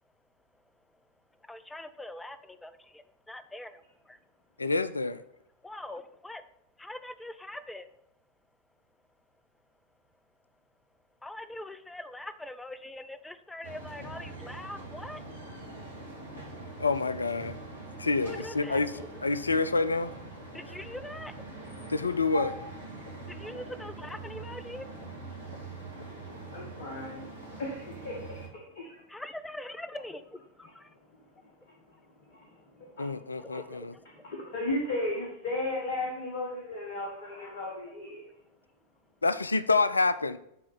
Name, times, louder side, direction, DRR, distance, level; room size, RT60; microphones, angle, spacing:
voice 1, 1.3-4.2 5.6-6.5 6.8-7.9 11.2-15.4 18.2-19.2 20.5-21.3 23.3-25.0 29.1-31.0 31.3-31.6 33.4-34.4, left 1 dB, 5° left, 12 dB, 0.5 m, -43 dB
voice 2, 4.6-5.2 16.8-17.6 18.0-18.9 19.2-20.1 21.9-22.6 33.0-33.9 39.2-40.4, left 3 dB, 80° left, 15 dB, 0.4 m, -27 dB
sound 1, 13.6-28.5, right 2 dB, 85° right, 1.9 m, -43 dB
voice 3, 26.5-27.3 27.6-29.0 30.9-33.6 34.2-38.2, left 2 dB, 55° left, 0 dB, 1.5 m, -36 dB
10.0 x 3.8 x 5.8 m, 0.80 s
figure-of-eight pair, 90°, 0 cm